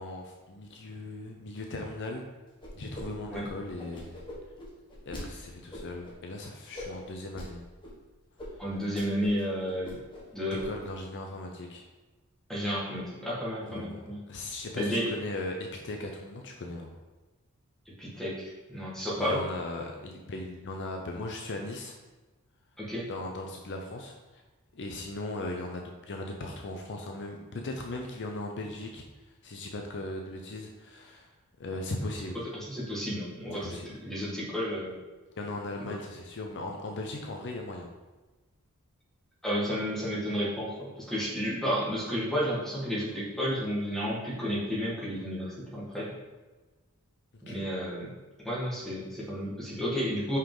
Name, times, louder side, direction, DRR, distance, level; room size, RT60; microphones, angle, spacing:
voice 1, 0.0-2.3 2.7-4.1 5.1-7.6 10.5-11.9 13.7-17.0 19.2-21.9 23.1-24.4 24.7-29.0 29.4-31.3 31.6-32.4 33.6-33.9 35.4-37.9 47.3-47.6, left 2 dB, 55° left, 2 dB, 0.6 m, -38 dB
sound 1, 2.6-3.0 3.3-5.2 5.7-6.1 6.7-7.5 7.8-7.9 8.4-8.5 8.8-9.4 9.7-10.2 10.6-10.9, left 1 dB, 20° left, 1.4 m, -42 dB
voice 2, 8.6-10.0 10.3-10.6 12.5-14.2 14.7-15.0 17.9-19.4 22.8-23.1 32.5-33.7 34.0-34.9 39.4-46.1 47.4-48.1 48.4-50.4, equal, ahead, -7 dB, 1.7 m, -32 dB
5.6 x 4.9 x 3.7 m, 1.2 s
head